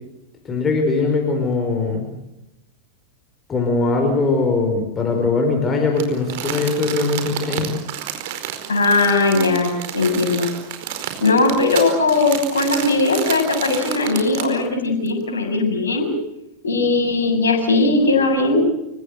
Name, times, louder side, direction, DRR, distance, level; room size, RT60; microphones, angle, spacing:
voice 1, 0.4-2.1 3.5-7.7, left 3 dB, 20° left, 2 dB, 5.2 m, -20 dB
Crumpling crinkling, 6.0-14.6 15.1-15.2, right 11 dB, 50° right, 4.8 m, -30 dB
voice 2, 8.7-10.5 11.2-16.1 16.6-18.6, left 3 dB, 70° left, 3 dB, 7.3 m, -18 dB
28.5 x 16.5 x 8.1 m, 0.89 s
figure-of-eight pair, 90°, 0 cm